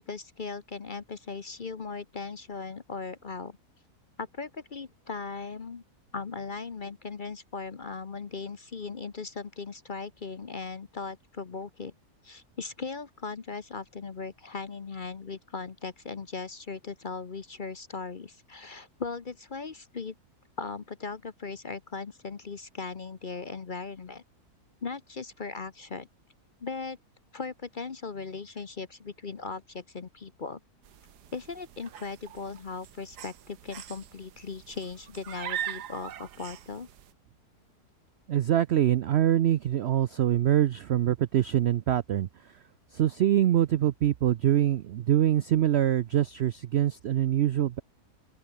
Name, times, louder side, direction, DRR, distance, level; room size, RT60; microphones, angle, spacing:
voice 1, 0.0-3.6 4.2-5.8 6.1-11.9 12.2-20.1 20.6-24.2 24.8-26.1 26.6-27.0 27.3-30.6 31.3-36.9, left 4 dB, 40° left, 0.9 m, -38 dB
sound 1, 30.8-37.1, right 10 dB, 90° right, 1.6 m, -41 dB
voice 2, 38.3-42.3 42.9-47.8, right 11 dB, 70° right, 0.6 m, -24 dB
open air
omnidirectional pair, 1.7 m